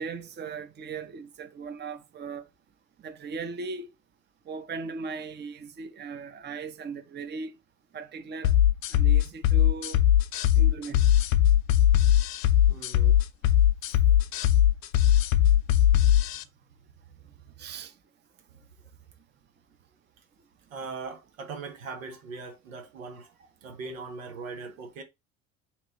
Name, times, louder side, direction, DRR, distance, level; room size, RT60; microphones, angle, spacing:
voice 1, 0.0-2.5 3.0-3.9 4.5-7.5 7.9-8.5 8.9-10.0 10.6-11.2 17.6-17.9, right 4 dB, 25° right, 0.7 m, -38 dB
sound 1, 8.4-16.4, left 11 dB, 80° left, 0.5 m, -20 dB
voice 2, 12.7-13.2 14.1-14.2 17.4-17.6 20.7-25.0, right 4 dB, 85° right, 0.9 m, -40 dB
3.0 x 2.9 x 4.0 m
hypercardioid pair, 65°, 39 cm